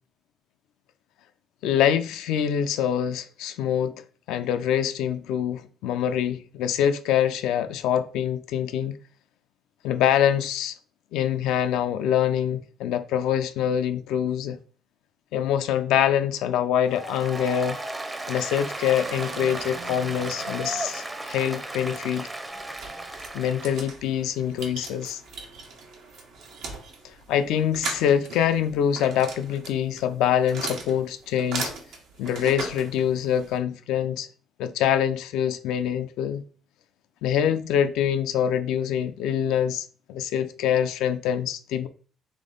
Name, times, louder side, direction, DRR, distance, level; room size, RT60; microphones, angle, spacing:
voice 1, 1.6-3.9 4.3-8.9 9.8-10.8 11.1-14.6 15.3-17.8 18.3-22.3 23.3-25.2 27.3-31.7 32.2-34.3 34.6-36.4 37.2-41.9, left 9 dB, 90° left, 0.4 m, -25 dB
Applause, 16.8-23.9, right 2 dB, 15° right, 0.6 m, -35 dB
sound 1, 18.7-21.7, right 7 dB, 65° right, 0.4 m, -43 dB
sound 2, 22.5-33.6, right 4 dB, 80° right, 1.1 m, -38 dB
3.6 x 3.5 x 3.8 m
cardioid pair, 100°, 0 cm